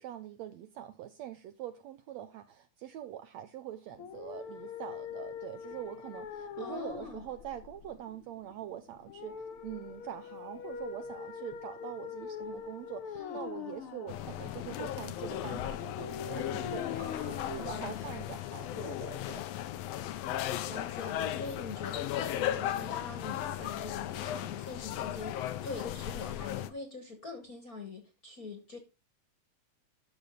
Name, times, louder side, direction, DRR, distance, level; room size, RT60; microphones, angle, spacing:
voice 1, 0.0-19.4, right 12 dB, 75° right, 1.7 m, -44 dB
sound 1, 3.9-18.9, left 7 dB, 60° left, 1.5 m, -43 dB
voice 2, 6.6-7.2 13.1-13.5 17.0-18.1 20.6-28.8, left 3 dB, 40° left, 1.3 m, -44 dB
sound 2, 14.1-26.7, left 12 dB, 80° left, 1.4 m, -36 dB
12.0 x 6.5 x 3.9 m
omnidirectional pair, 3.8 m